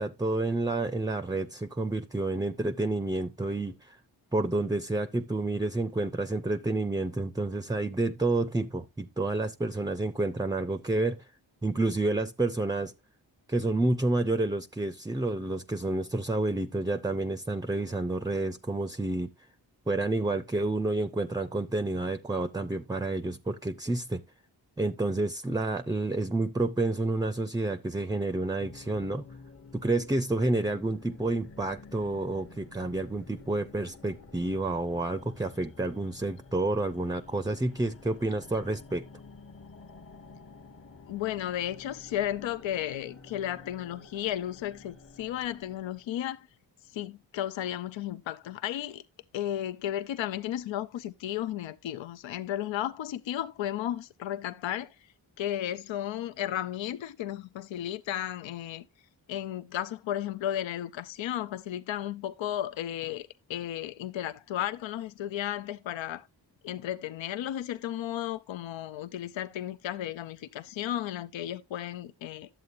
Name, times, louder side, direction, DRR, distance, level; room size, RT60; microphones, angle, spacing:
voice 1, 0.0-4.0 4.3-11.3 11.6-12.9 13.5-19.3 19.9-24.2 24.8-29.3 29.7-39.0, right 2 dB, 10° right, 0.4 m, -29 dB
sound 1, 28.6-46.1, left 4 dB, 30° left, 0.8 m, -51 dB
voice 2, 41.1-46.5 46.9-49.0 49.3-55.1 55.4-58.8 59.3-66.3 66.6-72.5, left 12 dB, 85° left, 0.5 m, -34 dB
11.0 x 7.7 x 2.5 m
cardioid pair, 60°, 44 cm